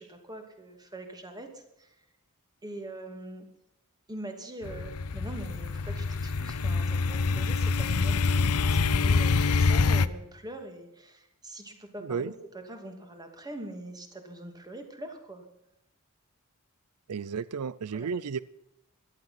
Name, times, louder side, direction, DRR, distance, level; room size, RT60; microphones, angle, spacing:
voice 1, 0.0-1.9 2.6-3.5 4.1-15.4 17.9-18.1, right 1 dB, 20° right, 5 dB, 2.7 m, -43 dB
sound 1, 4.6-10.1, left 4 dB, 80° left, 0.7 m, -26 dB
voice 2, 12.0-12.3 17.1-18.4, right 6 dB, 85° right, 18 dB, 0.5 m, -33 dB
17.5 x 12.0 x 5.8 m, 0.87 s
head